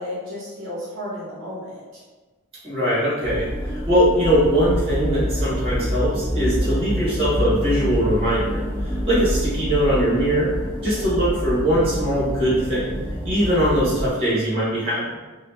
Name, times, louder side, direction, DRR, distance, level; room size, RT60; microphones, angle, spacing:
voice 1, 0.0-2.0, left 1 dB, 65° right, -7 dB, 1.0 m, -33 dB
voice 2, 2.6-10.5 10.8-12.9 13.2-15.0, equal, 25° right, -8 dB, 1.3 m, -21 dB
sound 1, 3.2-14.1, equal, 10° left, 0.4 m, -26 dB
2.8 x 2.5 x 3.4 m, 1.2 s
head